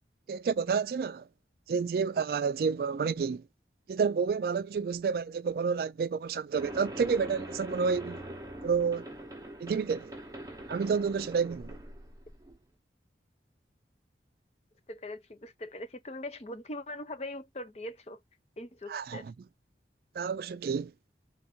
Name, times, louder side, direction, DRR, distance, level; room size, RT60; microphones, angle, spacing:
voice 1, 0.3-1.2 1.7-3.4 3.9-8.2 8.6-9.0 9.6-10.1 10.7-11.8 18.9-19.3 20.2-20.9, right 5 dB, 55° right, 0.3 m, -29 dB
sound 1, 6.6-12.6, right 1 dB, 20° right, 0.8 m, -43 dB
voice 2, 14.9-18.2 18.6-19.3, left 1 dB, 35° left, 0.6 m, -41 dB
3.5 x 2.5 x 4.2 m
head